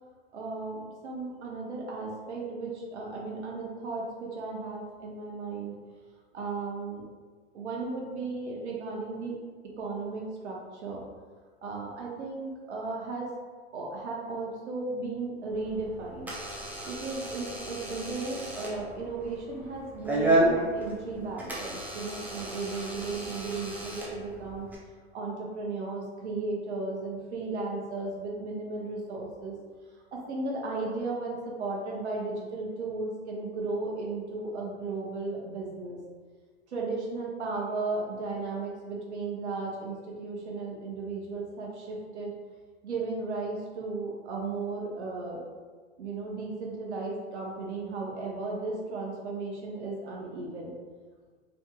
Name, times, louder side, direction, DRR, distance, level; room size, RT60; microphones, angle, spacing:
voice 1, 0.3-5.8 6.3-7.1 7.5-9.3 9.8-11.0 11.6-13.3 13.7-16.3 16.9-24.7 25.1-29.5 30.1-36.0 36.7-42.3 42.8-45.4 46.0-50.7, right 3 dB, 80° right, -2 dB, 0.8 m, -35 dB
Door / Alarm, 15.5-24.8, right 1 dB, 5° right, 0.4 m, -32 dB
3.4 x 2.8 x 2.4 m, 1.5 s
hypercardioid pair, 110°, 33 cm